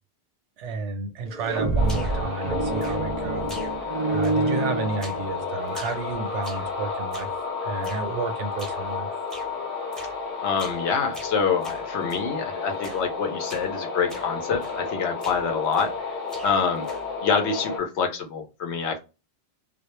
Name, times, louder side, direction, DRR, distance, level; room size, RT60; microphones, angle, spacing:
voice 1, 0.6-3.6 4.1-7.3 7.6-9.1, right 4 dB, 85° right, 0.9 m, -31 dB
sound 1, 1.3-5.5, right 2 dB, 50° right, 0.5 m, -27 dB
sound 2, 1.8-17.8, left 4 dB, 45° left, 0.8 m, -32 dB
sound 3, 1.8-2.3 2.8-3.2 3.5-4.0 4.2-4.6 5.0-5.3 5.7-6.7 7.1-7.4 7.8-8.1 8.6-8.9 9.3-9.5 9.9-10.2 10.6-10.8 11.1-12.3 12.8-13.1 13.4-13.7 14.1-14.3 14.6-14.9 15.2-16.0 16.3-17.2, equal, ahead, 0.5 m, -44 dB
voice 2, 10.4-16.2 16.4-16.9 17.2-19.0, left 6 dB, 75° left, 0.9 m, -26 dB
2.3 x 2.1 x 2.9 m
omnidirectional pair, 1.2 m